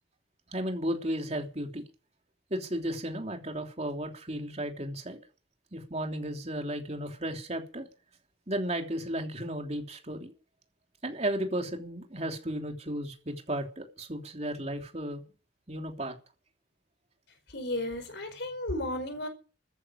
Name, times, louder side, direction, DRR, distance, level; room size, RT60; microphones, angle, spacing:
voice 1, 0.5-1.9 2.5-5.2 5.7-7.9 8.5-10.3 11.0-15.2 15.7-16.1, right 1 dB, 35° right, 3.3 m, -34 dB
voice 2, 17.5-19.3, left 1 dB, 60° left, 5.0 m, -34 dB
14.0 x 10.0 x 9.8 m
head